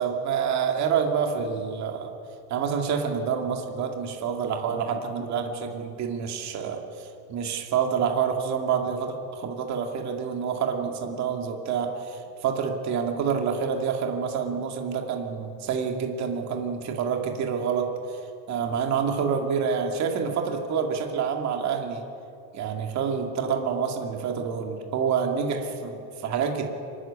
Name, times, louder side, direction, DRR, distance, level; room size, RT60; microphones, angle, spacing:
voice 1, 0.0-2.1 2.5-18.2 18.5-22.0 22.5-26.7, right 6 dB, 35° right, 3 dB, 2.3 m, -27 dB
24.0 x 13.0 x 10.0 m, 2.6 s
cardioid pair, 170°, 46 cm